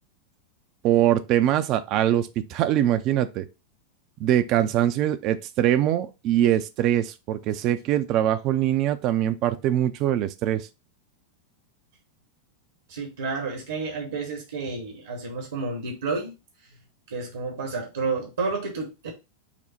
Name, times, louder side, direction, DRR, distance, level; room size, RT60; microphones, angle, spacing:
voice 1, 0.8-3.5 4.2-10.7, right 12 dB, 40° right, 0.5 m, -23 dB
voice 2, 12.9-16.4 17.1-19.1, right 4 dB, 65° right, 1.0 m, -30 dB
5.8 x 2.1 x 4.1 m
figure-of-eight pair, 90°, 0 cm